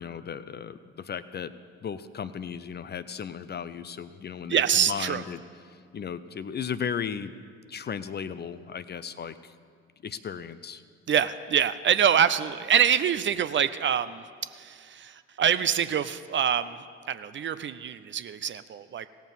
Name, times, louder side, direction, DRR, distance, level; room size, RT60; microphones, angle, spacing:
voice 1, 0.0-1.5 1.8-5.4 5.6-7.3 7.7-9.5 10.0-10.8, left 7 dB, 30° left, 14 dB, 0.5 m, -35 dB
voice 2, 4.5-5.2 11.1-14.2 14.5-16.8 17.1-19.1, right 8 dB, 35° right, 13 dB, 0.5 m, -25 dB
17.0 x 7.3 x 5.4 m, 2.2 s
hypercardioid pair, 50°, 34 cm